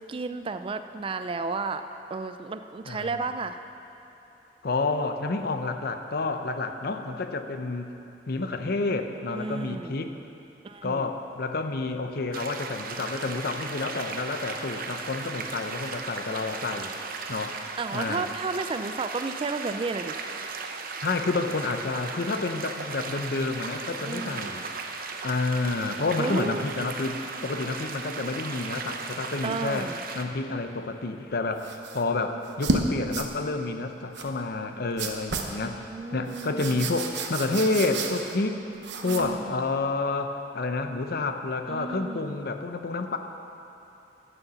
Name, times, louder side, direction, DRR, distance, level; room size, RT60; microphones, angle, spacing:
voice 1, 0.0-1.8 2.1-3.6 9.3-10.0 10.6-11.1 17.8-20.1 24.0-24.5 26.2-26.6 29.4-30.0 35.5-37.0 39.0-39.6 41.7-42.4, right 4 dB, 30° right, 9 dB, 0.4 m, -33 dB
voice 2, 4.6-7.9 8.3-10.1 10.8-16.9 17.3-17.6 17.9-18.3 21.0-24.6 25.2-29.9 30.1-35.8 36.1-38.6 39.0-43.2, left 3 dB, 60° left, 7 dB, 0.7 m, -29 dB
Small river, 12.3-30.2, right 4 dB, 55° right, 0.7 m, -37 dB
sound 1, 31.6-32.0 32.4-32.8 33.1-33.3 34.1-34.3 35.0-35.6 36.3-38.4 38.8-39.4, right 3 dB, 85° right, 0.9 m, -31 dB
10.5 x 7.0 x 6.9 m, 2.9 s
head